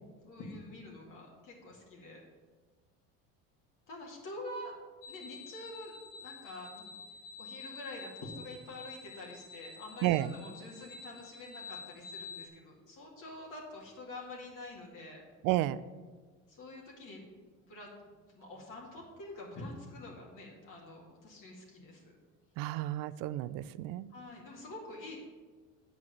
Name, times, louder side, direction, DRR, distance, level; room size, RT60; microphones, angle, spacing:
voice 1, 0.2-2.2 3.9-4.7 5.1-6.9 7.4-15.2 16.5-17.2 17.6-17.9 18.3-22.2 24.1-25.3, left 2 dB, 60° left, -2 dB, 2.3 m, -46 dB
sound 1, 5.0-12.5, left 5 dB, 80° left, 1.0 m, -49 dB
voice 2, 10.0-10.3 15.4-15.8 22.6-24.1, right 14 dB, 65° right, 16 dB, 0.5 m, -31 dB
8.1 x 4.9 x 7.2 m, 1.4 s
supercardioid pair, 90°, 36 cm